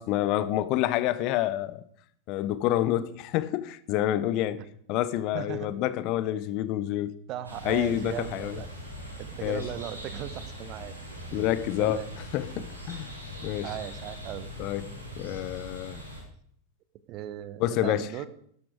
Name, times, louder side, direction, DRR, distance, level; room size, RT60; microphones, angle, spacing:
voice 1, 0.0-1.8 2.3-4.6 4.9-7.2 7.6-8.6 9.4-9.7 11.3-12.1 12.3-13.1 13.4-13.7 14.6-14.9 15.2-16.0 17.6-18.1, left 13 dB, 40° left, 0.8 m, -28 dB
voice 2, 5.3-5.7 7.3-8.7 9.2-10.9 11.3-11.5 11.8-12.1 13.6-14.5 17.1-18.3, right 11 dB, 35° right, 1.1 m, -37 dB
sound 1, 7.4-16.2, equal, 80° right, 4.3 m, -41 dB
12.5 x 12.5 x 4.9 m
figure-of-eight pair, 90°, 0 cm